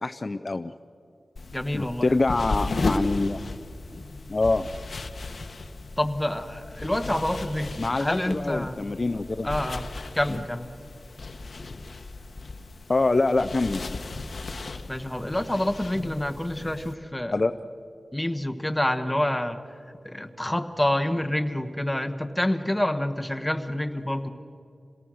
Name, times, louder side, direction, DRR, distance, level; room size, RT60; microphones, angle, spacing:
voice 1, 0.0-0.7 1.7-3.4 4.3-4.7 7.8-9.5 10.3-10.4 12.9-14.0 17.3-17.5, left 3 dB, 45° left, 10 dB, 0.5 m, -25 dB
sound 1, 1.4-16.9, left 3 dB, 65° left, 1.0 m, -35 dB
voice 2, 1.5-2.2 6.0-8.8 9.4-9.8 10.1-10.7 14.9-17.4 18.1-19.6 20.0-24.3, left 1 dB, 10° left, 7 dB, 1.2 m, -27 dB
27.0 x 18.0 x 6.3 m, 2.5 s
wide cardioid pair, 80°, 0 cm